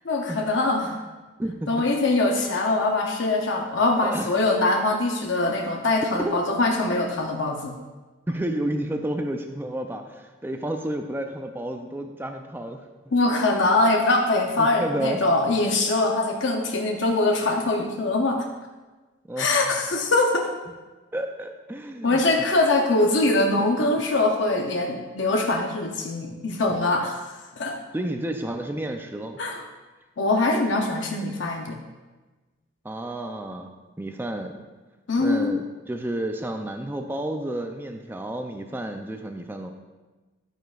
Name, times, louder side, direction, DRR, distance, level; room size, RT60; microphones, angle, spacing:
voice 1, 0.0-1.0 1.7-7.7 13.1-18.5 19.4-20.5 22.0-27.8 29.4-29.6 30.2-31.8 35.1-35.5, left 2 dB, 65° left, 2 dB, 0.7 m, -23 dB
voice 2, 1.4-1.9 4.0-4.3 6.2-6.4 8.3-12.9 14.6-15.2 19.3-19.8 21.1-22.2 23.8-24.0 26.3-26.4 27.9-29.4 32.8-33.7 34.0-34.6 35.2-35.6 35.9-39.7, right 1 dB, 10° right, 5 dB, 0.4 m, -31 dB
10.5 x 9.0 x 2.4 m, 1.2 s
head